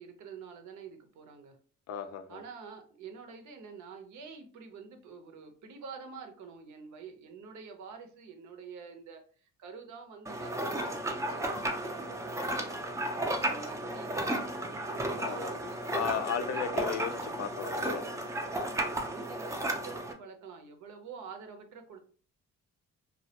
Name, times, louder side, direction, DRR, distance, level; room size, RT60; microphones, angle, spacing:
voice 1, 0.0-1.6 2.3-12.8 13.1-14.4 14.9-16.7 18.4-22.0, right 5 dB, 75° right, 0.6 m, -47 dB
voice 2, 1.9-2.4 15.2-15.5 15.9-18.1, left 8 dB, 60° left, 0.4 m, -35 dB
sound 1, 10.3-20.1, right 1 dB, 10° right, 0.3 m, -34 dB
2.3 x 2.1 x 2.7 m
cardioid pair, 90°, 30 cm